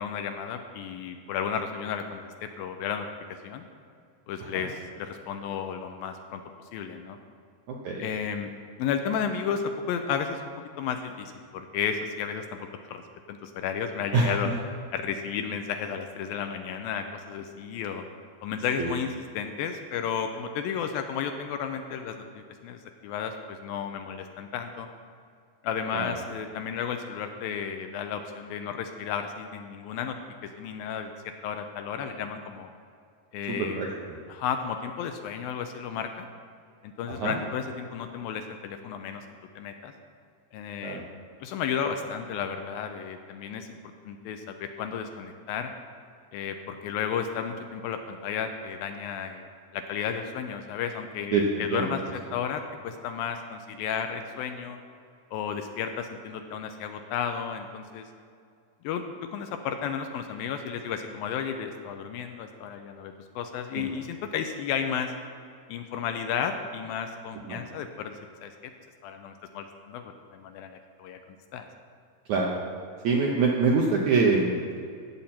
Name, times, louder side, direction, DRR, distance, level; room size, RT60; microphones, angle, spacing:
voice 1, 0.0-3.1 3.4-3.6 4.3-6.4 6.7-7.2 8.0-8.5 8.8-10.4 10.8-13.0 13.3-14.5 14.9-18.0 18.4-19.1 19.3-24.9 25.6-30.2 30.6-31.1 31.4-32.7 33.3-33.8 34.3-36.3 36.8-39.3 39.6-39.9 40.5-41.1 41.4-43.8 44.1-45.7 46.3-49.5 49.7-52.0 52.3-54.8 55.3-58.1 58.8-65.1 65.7-68.1 68.4-68.5 69.0-71.6, left 7 dB, 80° left, 6 dB, 2.2 m, -33 dB
voice 2, 7.7-8.0 14.1-14.6 18.8-19.0 25.9-26.1 33.5-33.9 37.1-37.3 40.8-41.0 51.3-52.0 63.7-63.8 67.5-67.6 72.3-72.6 73.0-74.8, right 4 dB, 75° right, -1 dB, 1.7 m, -25 dB
16.0 x 7.3 x 4.3 m, 2.4 s
omnidirectional pair, 4.5 m